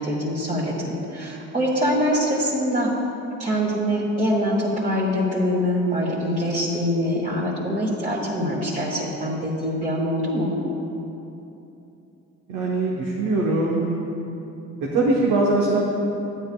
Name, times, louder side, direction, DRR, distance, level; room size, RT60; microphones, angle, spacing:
voice 1, 0.0-2.9 3.4-10.5, equal, 25° right, -7 dB, 1.7 m, -24 dB
voice 2, 12.5-14.1 14.8-15.8, right 2 dB, 90° right, -4 dB, 1.2 m, -22 dB
12.0 x 9.8 x 2.3 m, 2.9 s
cardioid pair, 90°, 30 cm